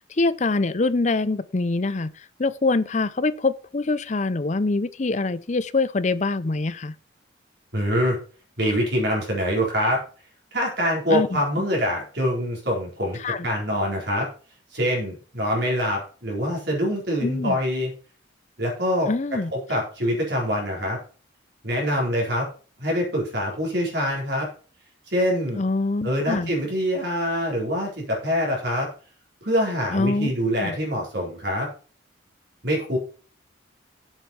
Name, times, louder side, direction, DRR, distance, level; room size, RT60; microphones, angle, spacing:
voice 1, 0.2-2.1 2.4-6.9 11.1-11.4 13.2-13.5 17.2-17.6 19.1-19.5 25.6-26.5 29.9-30.3 30.6-30.8, left 3 dB, 35° left, 0.5 m, -24 dB
voice 2, 7.7-8.2 8.6-10.0 10.5-14.3 14.7-17.9 18.6-19.1 19.5-21.0 21.6-22.5 22.8-24.5 25.1-25.6 26.0-28.9 29.4-31.7 32.6-33.0, equal, 60° right, 4.4 m, -24 dB
8.0 x 7.1 x 5.6 m
head